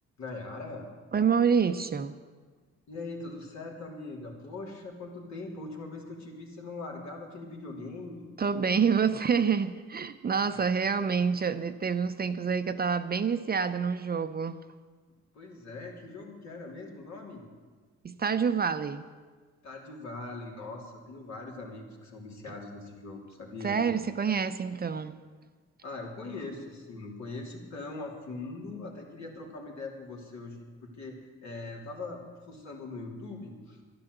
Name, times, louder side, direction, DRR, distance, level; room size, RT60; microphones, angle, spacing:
voice 1, 0.2-0.9 2.9-8.3 10.3-10.6 15.3-17.5 19.6-23.8 25.8-33.8, left 3 dB, 65° left, -1 dB, 3.3 m, -41 dB
voice 2, 1.1-2.1 8.4-14.6 18.0-19.0 23.6-25.2, right 6 dB, 30° right, 10 dB, 0.6 m, -27 dB
12.0 x 11.0 x 8.0 m, 1.5 s
cardioid pair, 90°, 30 cm